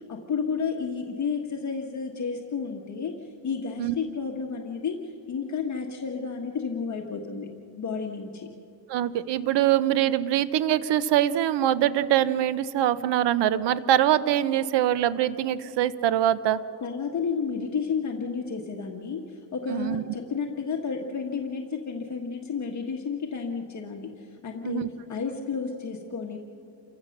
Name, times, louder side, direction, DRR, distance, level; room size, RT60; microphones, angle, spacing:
voice 1, 0.1-3.1 3.4-5.0 5.3-8.5 16.8-24.1 24.4-24.8 25.1-26.4, left 5 dB, 40° left, 1 dB, 1.6 m, -31 dB
voice 2, 8.9-16.6 19.7-20.0 24.6-24.9, right 11 dB, 70° right, 15 dB, 0.8 m, -23 dB
28.5 x 15.5 x 6.6 m, 2.5 s
cardioid pair, 120°, 44 cm